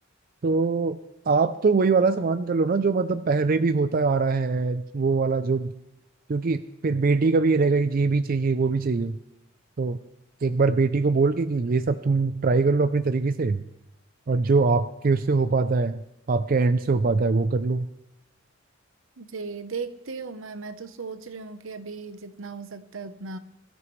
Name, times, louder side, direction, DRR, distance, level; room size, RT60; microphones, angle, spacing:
voice 1, 0.4-1.0 1.3-5.7 6.3-9.2 9.8-10.0 10.4-13.6 14.3-16.0 16.3-17.9, right 4 dB, 45° right, 11 dB, 0.4 m, -22 dB
voice 2, 19.2-23.4, right 4 dB, 80° right, 11 dB, 0.9 m, -37 dB
22.0 x 13.0 x 3.2 m, 0.90 s
head